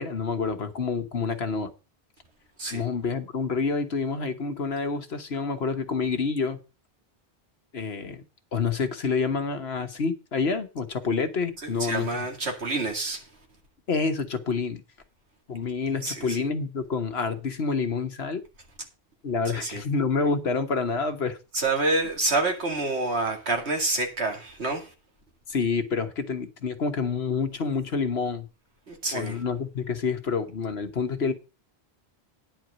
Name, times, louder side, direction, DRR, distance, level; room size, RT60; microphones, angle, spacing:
voice 1, 0.0-1.7 2.7-6.6 7.7-8.2 8.5-12.1 13.9-14.8 15.5-18.4 19.2-21.4 25.5-28.5 29.1-31.3, left 5 dB, 70° left, 1.5 m, -28 dB
voice 2, 11.6-13.3 16.0-16.4 19.5-19.8 21.5-24.9 28.9-29.4, right 2 dB, 80° right, 2.4 m, -28 dB
10.0 x 4.6 x 7.9 m
omnidirectional pair, 1.1 m